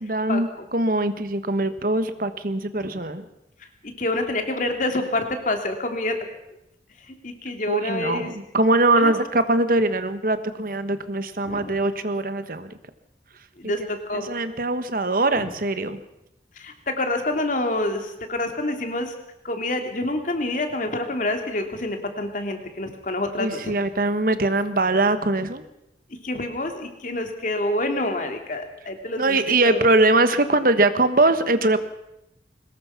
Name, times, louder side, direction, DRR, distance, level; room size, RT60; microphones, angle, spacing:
voice 1, 0.0-3.3 7.7-12.7 14.1-16.0 23.4-25.6 29.2-31.8, right 2 dB, 50° right, 11 dB, 1.3 m, -22 dB
voice 2, 3.6-6.2 7.1-8.4 8.9-9.1 11.4-11.8 13.6-14.3 15.3-15.5 16.6-19.1 19.4-23.7 26.2-29.8, left 2 dB, 45° left, 5 dB, 2.8 m, -27 dB
22.5 x 20.0 x 5.8 m, 0.87 s
head